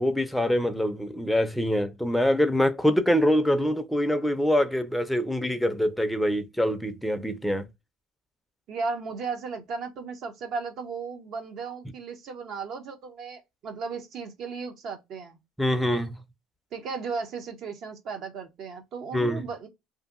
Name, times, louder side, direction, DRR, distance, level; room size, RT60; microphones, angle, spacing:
voice 1, 0.0-7.7 15.6-16.2 19.1-19.5, equal, ahead, 0.4 m, -24 dB
voice 2, 8.7-15.4 16.7-19.7, right 5 dB, 60° right, 0.6 m, -35 dB
2.7 x 2.5 x 2.3 m
supercardioid pair, 95°, 0 cm